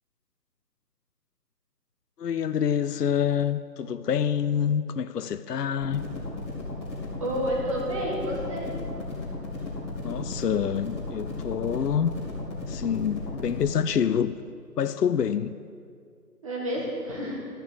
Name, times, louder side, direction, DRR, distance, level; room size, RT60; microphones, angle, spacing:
voice 1, 2.2-6.0 10.0-12.1 12.7-14.4 14.8-15.5, left 8 dB, 75° left, 12 dB, 0.6 m, -26 dB
sound 1, 5.8-13.7, left 2 dB, 15° left, 2.3 m, -35 dB
voice 2, 7.2-8.8 16.4-17.4, equal, 20° right, -4 dB, 1.9 m, -30 dB
13.5 x 6.7 x 7.9 m, 2.2 s
figure-of-eight pair, 160°, 49 cm